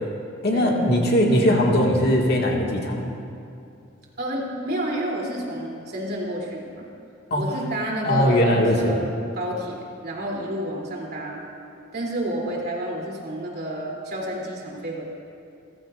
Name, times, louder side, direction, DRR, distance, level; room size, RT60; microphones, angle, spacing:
voice 1, 0.4-3.1 7.3-7.4 8.0-8.9, equal, 55° left, -1 dB, 2.0 m, -20 dB
voice 2, 4.2-6.8 7.4-11.4 11.9-15.0, right 1 dB, 55° right, -3 dB, 3.2 m, -30 dB
28.5 x 15.0 x 2.6 m, 2.5 s
head